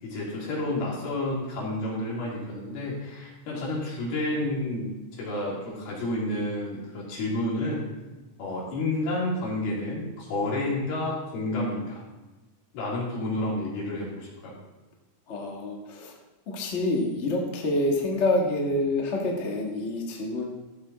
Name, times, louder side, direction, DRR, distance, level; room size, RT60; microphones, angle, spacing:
voice 1, 0.0-7.9 8.4-12.0 12.7-14.5, left 1 dB, 80° left, -5 dB, 4.8 m, -30 dB
voice 2, 15.3-16.2 16.5-20.4, left 2 dB, 50° left, -1 dB, 0.8 m, -27 dB
14.0 x 7.1 x 4.2 m, 1.1 s
omnidirectional pair, 4.3 m